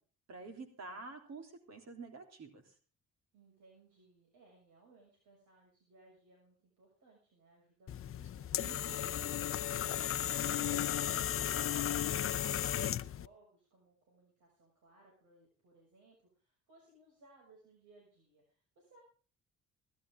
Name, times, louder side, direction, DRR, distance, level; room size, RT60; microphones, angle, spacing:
voice 1, 0.3-2.6 8.5-9.0, right 3 dB, 60° right, 5 dB, 3.4 m, -48 dB
voice 2, 3.3-8.8 9.2-19.0, right 2 dB, 75° right, -1 dB, 6.6 m, -64 dB
sound 1, 7.9-13.3, left 11 dB, 45° left, 0.6 m, -35 dB
17.5 x 12.5 x 3.7 m, 0.40 s
cardioid pair, 90°, 30 cm